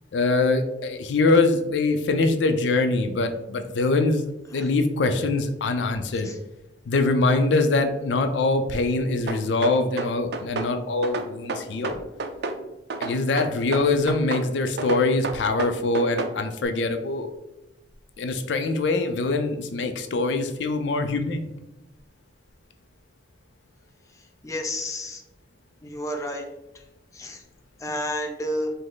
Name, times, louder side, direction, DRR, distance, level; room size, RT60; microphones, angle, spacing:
voice 1, 0.1-4.2 4.5-6.3 6.9-12.0 13.0-17.3 18.2-21.5, left 3 dB, 85° left, 7 dB, 0.4 m, -23 dB
sound 1, 9.3-10.7 11.0-12.6 12.9-14.5 14.8-16.3, right 3 dB, 65° right, 0.4 m, -30 dB
voice 2, 24.4-25.2 25.8-26.4 27.1-27.4 27.8-28.7, left 1 dB, 20° left, 2 dB, 0.5 m, -30 dB
5.1 x 2.0 x 3.8 m, 0.94 s
head